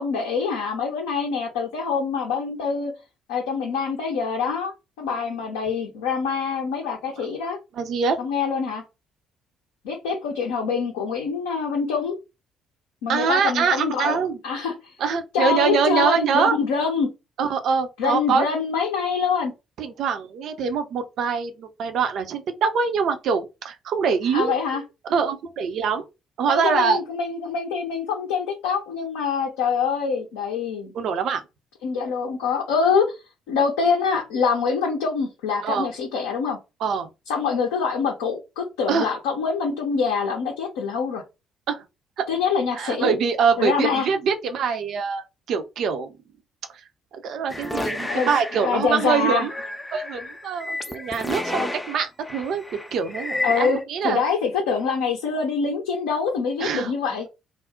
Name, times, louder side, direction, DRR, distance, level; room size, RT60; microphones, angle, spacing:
voice 1, 0.0-2.9 3.3-7.6 8.2-8.8 9.8-12.2 13.0-14.9 15.3-17.1 18.0-19.5 24.3-24.8 26.5-30.9 31.8-33.2 33.5-36.6 37.3-41.2 42.3-43.1 43.6-44.1 48.0-49.5 53.4-53.8 54.0-57.3, left 5 dB, 70° left, 0.5 m, -25 dB
voice 2, 7.8-8.2 13.1-14.4 15.0-16.6 17.4-18.5 19.8-24.6 25.1-26.0 26.4-27.0 30.9-31.4 35.6-35.9 36.8-37.1 38.9-39.1 41.7-41.8 42.2-42.3 42.8-46.1 46.7-46.8 47.2-49.5 49.9-52.6 52.9-54.2 56.6-56.9, right 6 dB, 55° right, 0.5 m, -24 dB
sound 1, 47.5-53.8, left 1 dB, 10° left, 0.5 m, -31 dB
2.4 x 2.0 x 3.6 m
figure-of-eight pair, 45°, 0 cm